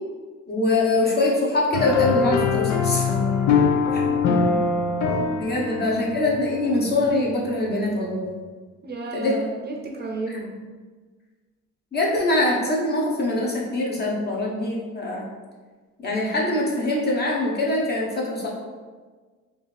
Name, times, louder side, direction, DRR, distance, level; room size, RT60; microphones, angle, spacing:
voice 1, 0.5-3.1 3.9-4.0 5.4-8.3 9.1-9.4 11.9-15.2 16.0-18.5, left 2 dB, 35° left, -4 dB, 1.1 m, -23 dB
sound 1, 1.7-7.3, left 5 dB, 70° left, 0.6 m, -23 dB
voice 2, 4.2-4.6 5.6-5.9 8.8-10.6, right 3 dB, 35° right, -1 dB, 0.6 m, -32 dB
4.2 x 2.7 x 3.3 m, 1.4 s
cardioid pair, 90°, 30 cm